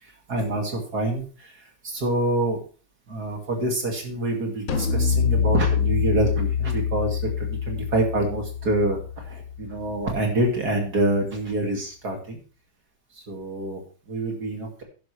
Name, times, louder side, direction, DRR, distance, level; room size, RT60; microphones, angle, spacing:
voice 1, 0.0-2.6 3.1-12.4 13.1-14.8, right 2 dB, 55° right, 1 dB, 2.8 m, -27 dB
sound 1, 4.7-10.1, left 7 dB, 45° left, 1.5 m, -25 dB
11.0 x 10.5 x 3.3 m, 0.39 s
omnidirectional pair, 2.1 m